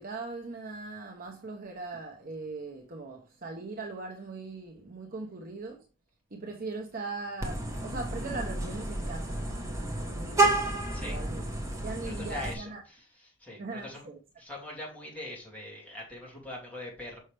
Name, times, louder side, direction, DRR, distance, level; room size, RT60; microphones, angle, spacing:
voice 1, 0.0-5.8 6.3-10.6 11.0-11.4 11.8-12.8 13.6-14.2, right 3 dB, 45° right, 0.9 m, -40 dB
Vehicle horn car horn honking, 7.4-12.5, right 2 dB, 15° right, 1.2 m, -30 dB
voice 2, 12.0-14.1 14.4-17.2, left 1 dB, 5° left, 2.4 m, -42 dB
6.3 x 5.5 x 3.3 m
head